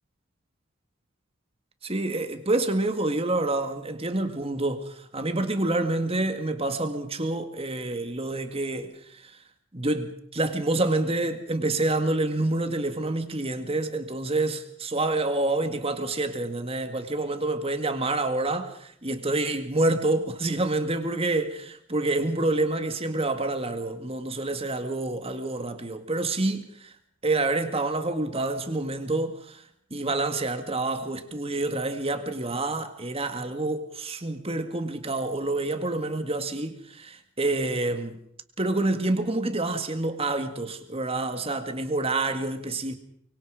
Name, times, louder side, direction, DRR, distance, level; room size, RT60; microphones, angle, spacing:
voice 1, 1.8-9.4 9.7-26.9 27.2-29.6 29.9-38.2 38.6-43.0, right 2 dB, 25° right, 1.9 m, -28 dB
24.0 x 24.0 x 5.0 m
head